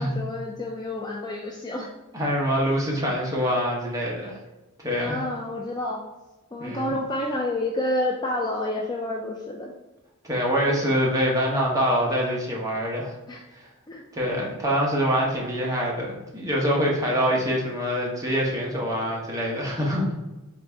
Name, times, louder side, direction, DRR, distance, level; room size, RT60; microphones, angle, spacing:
voice 1, 0.0-1.9 5.0-6.0 6.5-9.7 13.3-13.4 13.9-14.0, left 1 dB, 20° left, -1 dB, 0.3 m, -29 dB
voice 2, 2.1-4.4 4.8-5.2 6.6-6.9 10.2-13.1 14.1-20.1, equal, 15° right, -3 dB, 0.9 m, -25 dB
3.9 x 3.5 x 3.4 m, 1.1 s
head